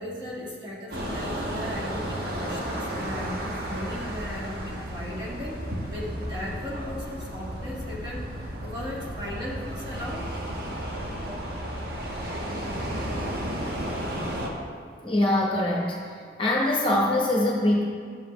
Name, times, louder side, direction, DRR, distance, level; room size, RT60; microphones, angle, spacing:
voice 1, 0.0-5.6 5.9-10.3 11.0-11.1, left 1 dB, 25° right, -6 dB, 1.5 m, -37 dB
sound 1, 0.9-14.5, equal, 55° right, 1.1 m, -33 dB
voice 2, 15.0-16.1 16.4-17.8, left 1 dB, 25° left, -2 dB, 0.9 m, -23 dB
11.0 x 7.2 x 3.0 m, 2.1 s
head